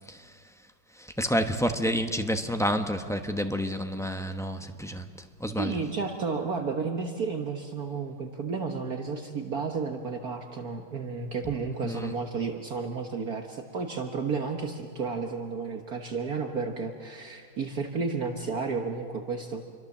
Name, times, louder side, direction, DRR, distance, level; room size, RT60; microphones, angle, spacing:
voice 1, 1.0-5.1 5.4-5.8 11.8-12.1, equal, 5° left, 6 dB, 0.5 m, -29 dB
voice 2, 5.6-19.6, right 4 dB, 55° right, 4 dB, 1.7 m, -32 dB
28.0 x 23.5 x 7.3 m, 2.1 s
omnidirectional pair, 2.1 m